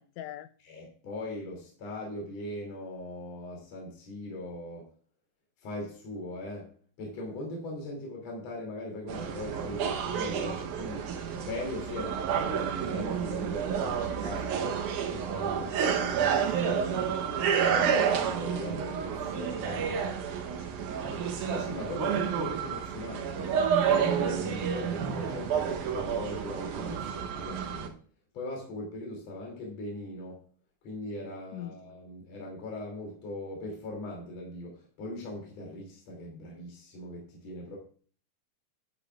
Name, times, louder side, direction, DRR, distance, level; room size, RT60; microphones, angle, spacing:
voice 1, 0.0-0.5 19.2-20.7 20.9-21.2 31.5-31.7, left 12 dB, 80° left, 1.8 m, -44 dB
voice 2, 0.6-4.9 5.6-11.1 11.4-14.8 15.1-17.2 17.5-20.1 21.4-23.6 23.9-28.0 28.3-30.4 30.8-37.8, left 1 dB, 60° left, 3.9 m, -40 dB
sound 1, 9.1-27.9, right 7 dB, 85° right, 2.5 m, -30 dB
11.0 x 10.5 x 2.4 m
omnidirectional pair, 3.4 m